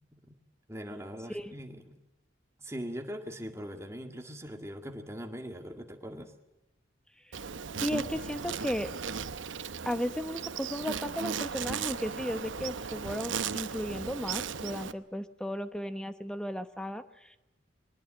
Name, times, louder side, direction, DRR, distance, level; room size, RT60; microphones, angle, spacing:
voice 1, 0.7-2.0 2.6-6.3, equal, 15° right, 5 dB, 1.9 m, -41 dB
Insect, 7.3-14.9, right 6 dB, 75° right, 0.8 m, -36 dB
voice 2, 7.8-8.9 9.9-17.4, equal, 5° left, 10 dB, 0.9 m, -35 dB
22.5 x 19.5 x 8.9 m, 0.93 s
head